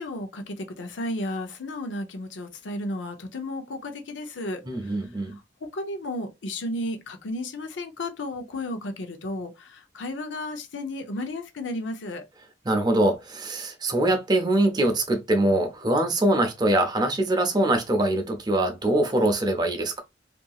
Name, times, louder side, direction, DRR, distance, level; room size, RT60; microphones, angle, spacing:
voice 1, 0.0-12.3, left 1 dB, 90° left, 0.6 m, -33 dB
voice 2, 4.7-5.4 12.7-20.0, right 1 dB, 25° right, 0.6 m, -23 dB
2.8 x 2.6 x 2.3 m
head